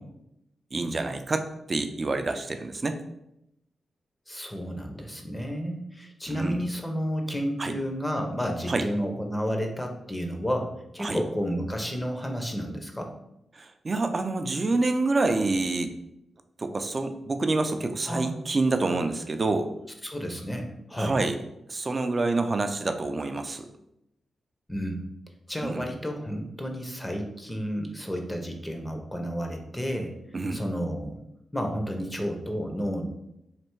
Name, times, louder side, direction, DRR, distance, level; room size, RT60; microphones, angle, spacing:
voice 1, 0.7-1.4 1.7-3.0 6.3-6.6 7.6-7.7 8.7-8.9 11.0-11.2 13.5-16.0 16.6-19.7 21.0-21.3 21.7-23.7 25.6-25.9 30.3-30.6, right 3 dB, 35° right, 7 dB, 0.4 m, -27 dB
voice 2, 4.3-13.1 18.1-18.4 20.0-21.2 24.7-25.0 25.5-30.2 30.5-31.2 31.5-33.1, equal, 10° left, 3 dB, 0.6 m, -31 dB
3.2 x 2.6 x 4.5 m, 0.82 s
cardioid pair, 80°, 0 cm